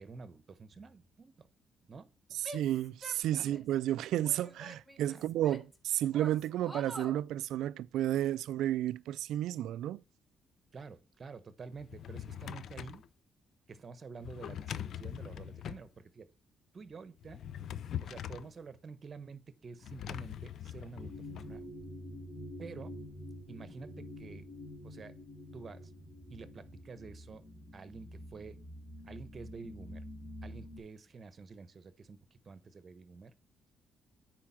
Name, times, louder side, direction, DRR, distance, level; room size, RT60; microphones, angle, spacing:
voice 1, 0.0-1.5 1.8-2.4 3.3-3.6 5.1-5.2 10.7-13.0 13.7-16.3 16.7-17.5 18.0-21.7 22.6-23.0 23.5-24.5 24.8-25.2 25.5-25.9 26.3-27.4 27.7-28.6 29.0-30.0 30.4-33.3, right 4 dB, 40° right, 1.0 m, -49 dB
voice 2, 2.3-10.0, right 12 dB, 85° right, 0.3 m, -32 dB
Female speech woman speaking / Yell, 2.4-3.7 4.2-5.8 6.1-7.2, right 1 dB, 10° right, 3.8 m, -48 dB
Drawer open or close, 11.7-13.1 14.2-15.9 17.2-18.5 19.8-21.5, left 10 dB, 65° left, 0.5 m, -42 dB
sound 1, 21.0-30.8, left 1 dB, 30° left, 3.5 m, -47 dB
9.7 x 4.6 x 5.8 m
cardioid pair, 90°, 0 cm